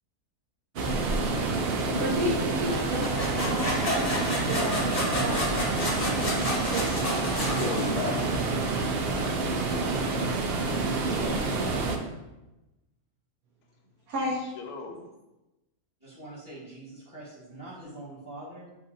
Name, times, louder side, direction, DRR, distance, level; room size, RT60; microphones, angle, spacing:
sound 1, 0.8-12.0, right 3 dB, 90° right, 0.5 m, -28 dB
voice 1, 1.8-6.9 8.9-9.2 14.1-14.4, equal, 70° right, -4 dB, 1.2 m, -34 dB
sound 2, 2.7-8.4, left 1 dB, 30° left, 0.8 m, -31 dB
voice 2, 7.1-8.4 14.2-15.0, left 4 dB, 75° left, 3 dB, 1.2 m, -36 dB
voice 3, 11.1-12.0 14.8-14.9 16.0-18.7, right 1 dB, 15° right, -10 dB, 1.3 m, -43 dB
7.8 x 2.7 x 2.5 m, 1.0 s
omnidirectional pair, 1.7 m